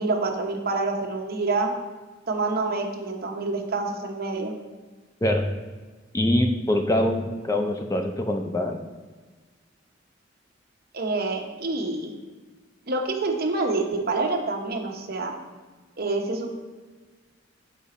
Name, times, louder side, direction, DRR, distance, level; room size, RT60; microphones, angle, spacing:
voice 1, 0.0-1.7 2.3-4.5 10.9-12.1 12.9-15.3 16.0-16.5, right 3 dB, 55° right, 2 dB, 0.9 m, -27 dB
voice 2, 6.1-8.8, left 1 dB, 15° left, 4 dB, 0.5 m, -24 dB
7.2 x 4.9 x 4.2 m, 1.4 s
head